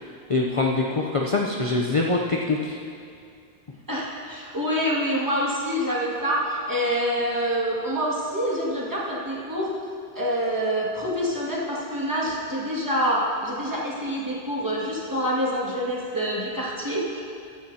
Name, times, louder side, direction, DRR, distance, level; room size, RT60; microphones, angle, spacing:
voice 1, 0.3-2.8, left 3 dB, 35° left, -1 dB, 0.7 m, -24 dB
voice 2, 3.9-9.7 10.2-17.2, equal, 20° right, -6 dB, 2.2 m, -26 dB
15.0 x 13.0 x 2.8 m, 2.4 s
omnidirectional pair, 1.0 m